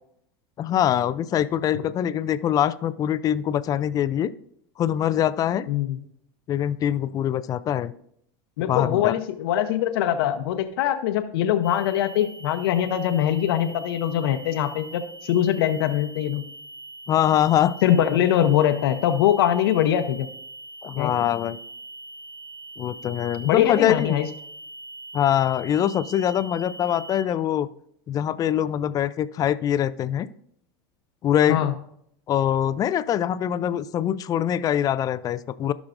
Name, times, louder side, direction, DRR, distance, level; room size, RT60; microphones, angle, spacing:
voice 1, 0.6-4.3 4.8-5.7 6.5-7.9 8.7-9.1 17.1-17.8 20.8-21.6 22.8-24.1 25.1-27.7 28.1-30.3 31.2-31.7 32.3-35.7, left 10 dB, 30° left, 15 dB, 0.4 m, -23 dB
voice 2, 5.7-6.0 8.6-16.4 17.8-20.3 21.0-21.3 23.4-24.3 31.5-31.7, left 11 dB, 80° left, 7 dB, 0.8 m, -22 dB
sound 1, 11.6-27.2, right 2 dB, 15° right, 2.3 m, -42 dB
15.0 x 6.1 x 2.5 m, 0.70 s
supercardioid pair, 135°, 12 cm